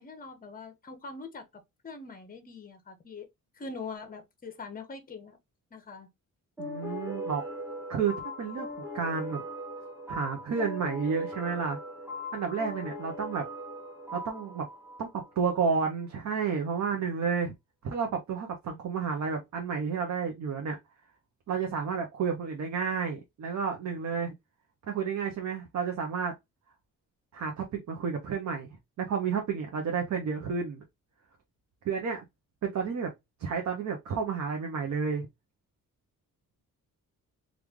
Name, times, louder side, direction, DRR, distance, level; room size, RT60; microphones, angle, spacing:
voice 1, 0.0-1.4 1.8-3.3 3.6-5.4 5.7-6.1, left 4 dB, 25° left, 0.7 m, -43 dB
sound 1, 6.6-15.8, left 1 dB, 10° right, 0.8 m, -40 dB
voice 2, 6.6-7.4 7.9-9.4 10.1-11.8 12.3-13.5 14.1-14.7 15.0-17.5 17.8-20.8 21.5-24.3 24.9-26.3 27.3-28.7 29.0-30.8 31.8-32.2 32.6-33.1 33.4-35.3, right 6 dB, 55° right, 0.7 m, -31 dB
3.1 x 2.4 x 3.5 m
wide cardioid pair, 170°, 34 cm